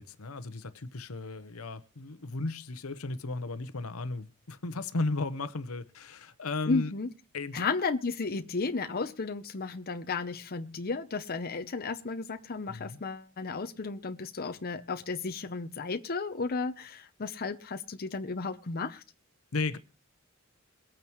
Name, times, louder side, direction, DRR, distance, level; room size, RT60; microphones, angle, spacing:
voice 1, 0.0-6.9 7.3-7.7 12.7-13.0 19.5-19.8, left 3 dB, 75° left, 1.0 m, -35 dB
voice 2, 6.7-7.1 7.5-19.0, left 4 dB, 45° left, 0.7 m, -33 dB
22.5 x 9.0 x 3.1 m
head